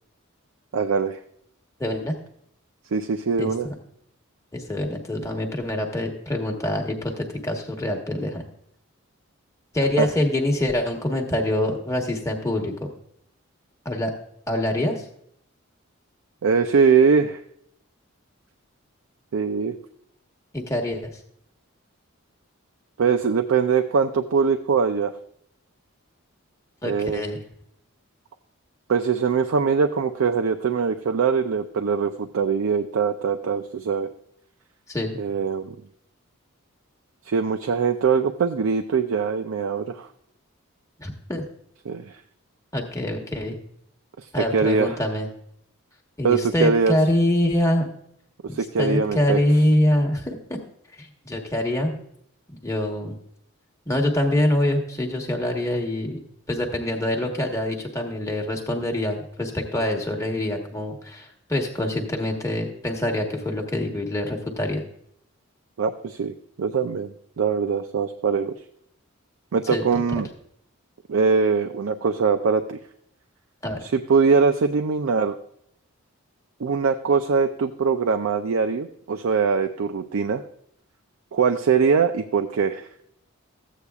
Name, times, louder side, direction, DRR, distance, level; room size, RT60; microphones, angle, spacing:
voice 1, 0.7-1.2 2.9-3.7 10.0-10.1 16.4-17.4 19.3-19.8 23.0-25.1 26.8-27.3 28.9-34.1 35.2-35.8 37.3-40.1 41.9-42.1 44.2-45.0 46.2-47.0 48.4-49.4 65.8-68.5 69.5-70.3 71.1-72.8 73.8-75.4 76.6-80.4 81.3-82.9, right 5 dB, 70° right, 7 dB, 0.4 m, -22 dB
voice 2, 1.8-2.2 3.4-3.7 4.5-8.4 9.7-12.9 13.8-14.1 14.5-15.1 20.5-21.1 26.8-27.4 34.9-35.2 41.0-41.4 42.7-43.6 44.3-45.3 46.2-47.9 48.5-50.4 51.0-51.9 52.6-53.2 53.8-56.2 56.5-64.8 69.6-70.0 73.6-73.8, left 1 dB, 15° left, 1 dB, 1.1 m, -25 dB
14.0 x 8.3 x 2.3 m, 0.70 s
head